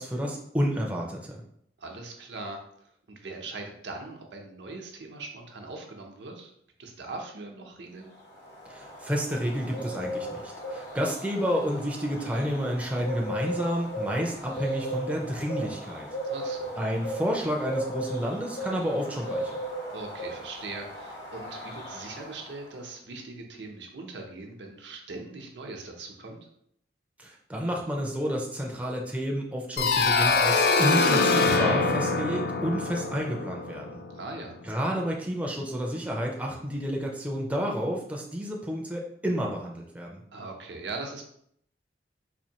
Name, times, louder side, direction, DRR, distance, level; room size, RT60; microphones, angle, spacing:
voice 1, 0.0-1.4 8.7-16.1 16.8-19.5 27.2-34.0 34.6-40.2, equal, 10° right, -1 dB, 0.4 m, -30 dB
voice 2, 1.8-6.5 6.8-8.1 16.3-16.7 19.9-26.4 34.1-34.6 40.3-41.2, right 3 dB, 80° right, 2 dB, 0.7 m, -40 dB
Bird, 8.1-22.8, right 1 dB, 80° left, 1.4 m, -37 dB
sound 1, 29.8-34.4, left 3 dB, 60° left, 0.4 m, -24 dB
4.2 x 2.6 x 2.9 m, 0.69 s
head